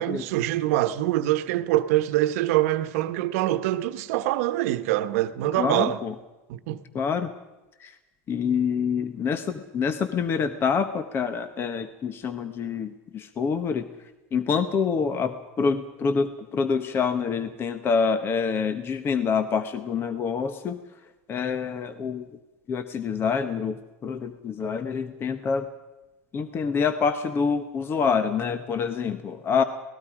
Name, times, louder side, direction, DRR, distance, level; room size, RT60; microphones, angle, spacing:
voice 1, 0.0-6.0 6.5-6.8, right 14 dB, 70° right, 1.2 m, -24 dB
voice 2, 5.6-6.1 6.9-7.3 7.8-7.9 8.3-13.9 14.3-20.8 21.3-22.3 22.7-25.7 26.3-29.6, left 6 dB, 30° left, 1.1 m, -26 dB
28.0 x 19.0 x 5.0 m
supercardioid pair, 130°, 8 cm